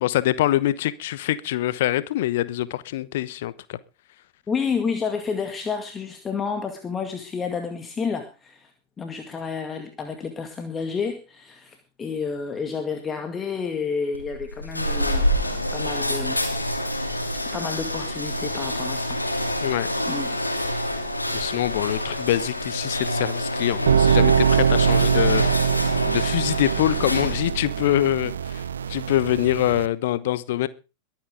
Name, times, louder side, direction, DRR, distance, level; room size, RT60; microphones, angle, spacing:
voice 1, 0.0-3.8 19.6-19.9 21.3-25.8 26.1-30.7, left 14 dB, 55° left, 1.0 m, -24 dB
voice 2, 4.5-8.7 9.0-16.4 17.5-19.5 20.1-20.4, left 5 dB, 20° left, 2.1 m, -30 dB
sound 1, 14.1-27.6, left 1 dB, 85° left, 2.7 m, -27 dB
sound 2, 23.9-29.9, right 7 dB, 70° right, 0.7 m, -22 dB
22.5 x 9.2 x 3.8 m
figure-of-eight pair, 90°, 0 cm